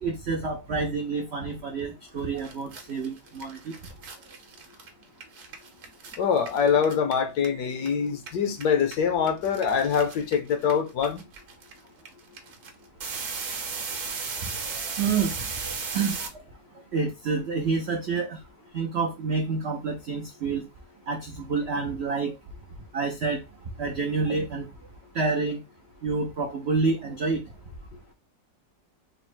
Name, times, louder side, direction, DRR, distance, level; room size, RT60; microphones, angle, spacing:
voice 1, 0.0-3.7 14.7-16.3 16.9-18.4 18.7-20.6 21.1-22.4 22.9-23.4 23.8-24.7 25.1-25.6 26.0-27.4, right 4 dB, 75° right, 0.6 m, -28 dB
sound 1, 2.1-2.2 2.4-7.9 8.2-16.3, right 5 dB, 55° right, 1.1 m, -36 dB
voice 2, 6.2-11.2, left 7 dB, 70° left, 1.2 m, -24 dB
4.0 x 2.0 x 4.3 m
omnidirectional pair, 1.9 m